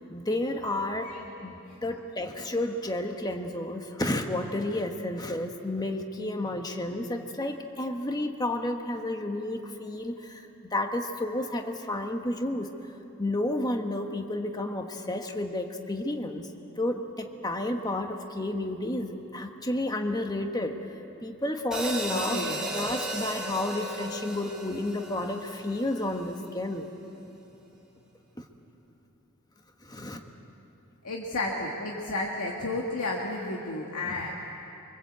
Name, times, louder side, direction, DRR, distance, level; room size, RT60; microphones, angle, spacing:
voice 1, 0.1-1.1 1.4-1.5 1.8-12.7 13.2-16.5 16.8-22.5 22.7-26.9 28.4-28.5 29.8-30.2 34.0-34.1, left 1 dB, 15° left, 4 dB, 1.3 m, -31 dB
voice 2, 1.0-1.4 22.1-22.7 31.0-34.3, left 2 dB, 80° left, -1 dB, 2.0 m, -32 dB
sound 1, 21.7-26.1, right 1 dB, 5° right, 3.2 m, -35 dB
25.0 x 24.5 x 8.2 m, 3.0 s
head